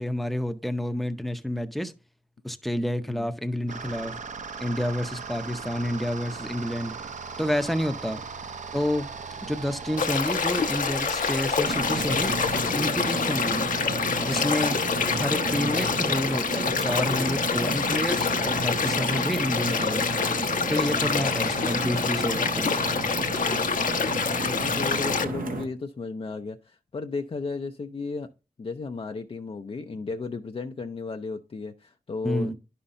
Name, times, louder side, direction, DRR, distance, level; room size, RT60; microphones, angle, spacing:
voice 1, 0.0-1.9 2.4-4.2 4.6-7.0 7.4-8.2 8.7-9.1 9.4-12.4 12.8-13.7 14.2-14.8 15.1-20.2 20.7-22.7 32.2-32.5, equal, ahead, 0.7 m, -29 dB
sound 1, 3.7-12.6, right 5 dB, 55° right, 0.8 m, -38 dB
sound 2, 10.0-25.2, left 5 dB, 65° left, 0.9 m, -26 dB
sound 3, 11.6-25.6, right 3 dB, 75° right, 1.2 m, -32 dB
voice 2, 24.2-28.3 28.6-32.5, left 3 dB, 40° left, 0.5 m, -34 dB
11.0 x 5.6 x 2.6 m
wide cardioid pair, 105°, 15 cm